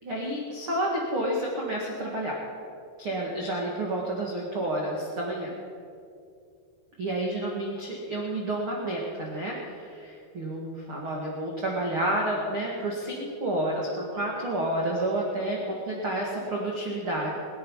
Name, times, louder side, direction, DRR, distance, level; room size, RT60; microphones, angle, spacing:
voice 1, 0.0-2.4 3.0-5.5 7.0-17.3, right 1 dB, 55° right, -3 dB, 1.5 m, -30 dB
22.0 x 10.0 x 5.6 m, 2.4 s
omnidirectional pair, 5.4 m